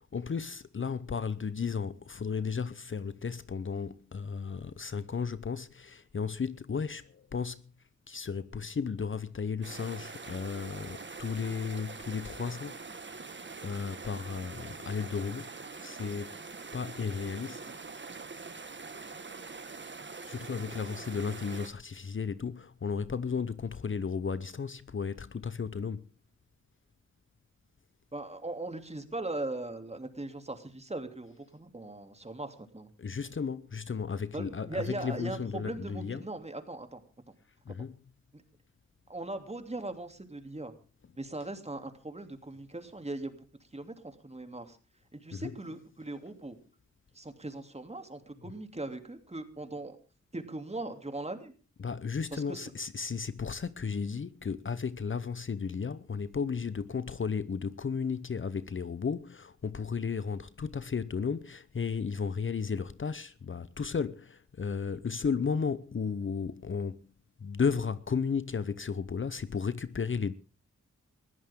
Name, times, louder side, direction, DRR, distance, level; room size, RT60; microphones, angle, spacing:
voice 1, 0.1-7.6 8.1-13.2 13.6-15.5 15.8-16.4 16.7-17.6 20.2-26.1 33.0-36.3 37.7-38.0 45.3-45.6 51.8-67.0 67.4-70.3, left 6 dB, 45° left, 0.8 m, -34 dB
sound 1, 9.6-21.7, right 4 dB, 40° right, 1.7 m, -44 dB
voice 2, 28.1-32.9 34.3-37.0 38.3-38.4 39.1-40.7 41.2-43.4 43.7-44.8 45.1-46.6 47.1-50.0 50.3-51.5 52.3-52.6, right 2 dB, 20° right, 2.9 m, -39 dB
20.5 x 14.5 x 3.7 m
cardioid pair, 75°, 29 cm